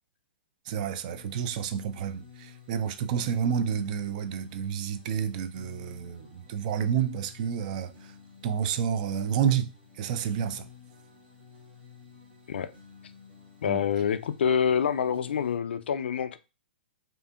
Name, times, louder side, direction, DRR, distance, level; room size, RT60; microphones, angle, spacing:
voice 1, 0.7-7.9 8.4-9.7 10.0-10.7 13.7-13.8, right 8 dB, 45° right, 0.3 m, -29 dB
sound 1, 1.0-15.6, left 6 dB, 75° right, 1.2 m, -53 dB
voice 2, 13.6-16.4, left 7 dB, 75° left, 0.3 m, -26 dB
2.7 x 2.5 x 2.3 m
hypercardioid pair, 130°, 6 cm